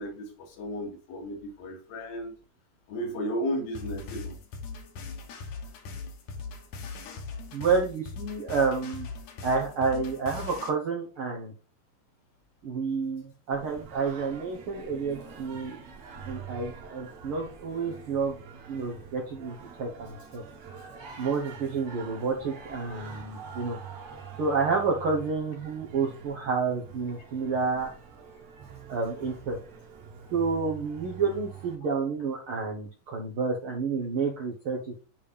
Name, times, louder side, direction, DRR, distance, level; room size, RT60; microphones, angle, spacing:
voice 1, 0.0-2.3 2.9-4.4, equal, 75° left, 1 dB, 3.8 m, -34 dB
sound 1, 3.8-10.7, left 4 dB, 60° left, 2.3 m, -40 dB
voice 2, 7.5-9.1 9.4-11.5 12.6-15.8 16.3-18.4 18.7-20.4 21.2-23.8 24.4-27.9 28.9-29.6 30.3-35.1, right 4 dB, 80° right, 0 dB, 1.2 m, -29 dB
Singing, 13.5-31.8, right 6 dB, 55° right, 2.4 m, -45 dB
9.5 x 3.4 x 5.2 m, 0.35 s
omnidirectional pair, 4.2 m